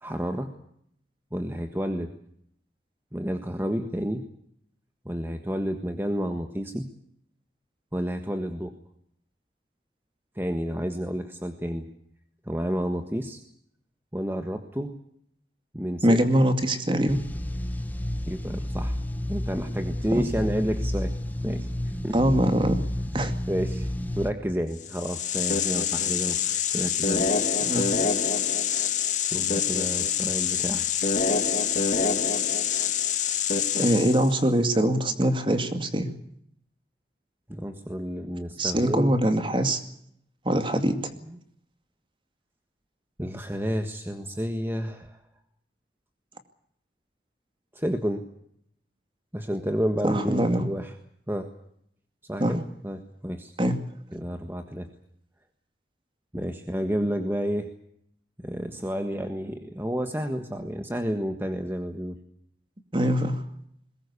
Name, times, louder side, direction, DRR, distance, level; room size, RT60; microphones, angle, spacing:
voice 1, 0.0-0.5 1.3-2.1 3.1-4.2 5.0-6.9 7.9-8.8 10.3-11.9 12.4-13.4 14.1-14.9 15.7-16.3 18.3-19.0 19.3-21.1 21.4-22.2 23.5-23.9 24.1-27.3 29.3-30.8 37.5-39.1 41.2-41.4 43.2-45.2 47.7-48.2 49.3-50.9 51.3-51.5 52.2-53.5 54.1-54.9 56.3-57.7 58.4-62.2, equal, 15° right, 6 dB, 1.5 m, -30 dB
voice 2, 16.0-17.2 22.1-22.8 23.1-23.3 27.7-27.9 33.8-36.1 38.6-39.8 40.5-41.1 50.0-50.7 52.4-52.5 53.6-53.8 62.9-63.4, right 1 dB, 30° right, 8 dB, 2.3 m, -23 dB
sound 1, 17.1-24.3, left 1 dB, 10° left, 1.4 m, -31 dB
sound 2, 24.8-34.4, left 7 dB, 45° left, 2.0 m, -26 dB
22.0 x 19.5 x 8.4 m, 0.69 s
head